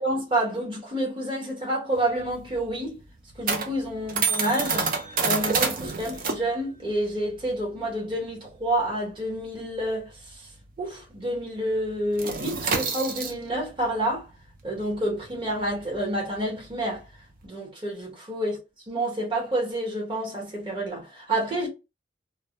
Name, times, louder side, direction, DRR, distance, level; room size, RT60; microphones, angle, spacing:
voice 1, 0.0-3.0 3.4-4.9 5.2-10.5 10.8-14.3 14.6-17.0 17.4-18.6 18.9-21.7, right 1 dB, 25° right, 1.0 m, -29 dB
sound 1, 1.9-10.9 11.2-11.4 11.7-17.5, right 5 dB, 45° right, 0.4 m, -30 dB
2.1 x 2.1 x 2.8 m
head